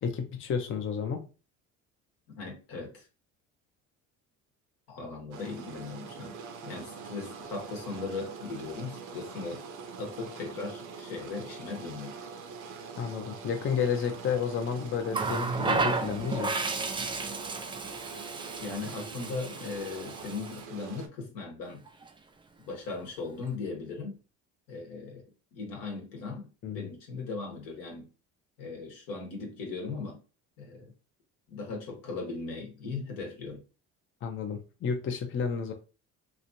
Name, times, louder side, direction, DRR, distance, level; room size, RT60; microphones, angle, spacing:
voice 1, 0.0-1.3 13.0-16.5 26.6-26.9 34.2-35.7, left 6 dB, 35° left, 0.5 m, -31 dB
voice 2, 2.3-3.1 4.9-6.4 6.6-9.6 10.0-12.1 18.6-21.8 22.6-24.2 24.7-25.2 25.5-26.5 26.7-28.1 28.6-30.2 30.6-30.9 31.5-33.6, left 4 dB, 80° left, 1.2 m, -38 dB
sound 1, 5.3-21.1, right 5 dB, 60° right, 0.7 m, -44 dB
Water tap faucet, 15.1-20.6 21.9-22.1, right 3 dB, 15° right, 0.3 m, -33 dB
3.0 x 2.5 x 2.6 m
supercardioid pair, 70°, 35 cm